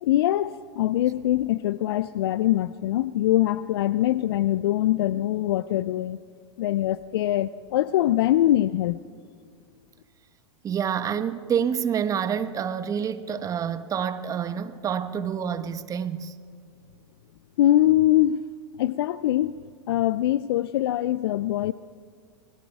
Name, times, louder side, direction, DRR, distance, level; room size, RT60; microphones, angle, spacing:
voice 1, 0.0-6.2 6.6-9.0 17.6-18.4 18.8-21.7, left 13 dB, 60° left, 0.5 m, -23 dB
voice 2, 10.6-16.3, right 8 dB, 25° right, 1.2 m, -28 dB
29.5 x 21.0 x 4.7 m
hypercardioid pair, 100°, 14 cm